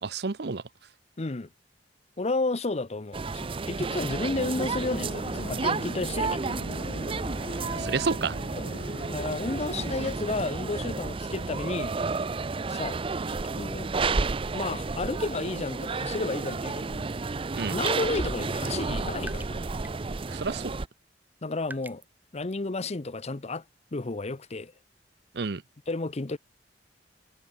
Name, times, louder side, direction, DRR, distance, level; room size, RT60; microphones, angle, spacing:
voice 1, 0.0-0.6 7.8-8.4 17.5-17.8 20.3-20.8 25.3-25.6, right 4 dB, 70° right, 0.8 m, -30 dB
voice 2, 1.2-1.5 2.2-6.6 8.6-8.7 9.1-12.0 12.7-13.0 13.3-14.2 14.5-17.1 17.7-19.6 21.4-22.0 22.3-23.6 23.9-24.7 25.9-26.4, left 3 dB, 40° left, 0.8 m, -32 dB
sound 1, 3.1-20.9, right 4 dB, 30° right, 0.5 m, -31 dB
sound 2, 4.5-9.9, left 1 dB, 65° left, 2.4 m, -40 dB
sound 3, 17.2-17.4 17.8-18.1 18.8-18.9 19.2-20.0 20.3-20.4 21.7-22.1, right 2 dB, 10° right, 5.3 m, -42 dB
head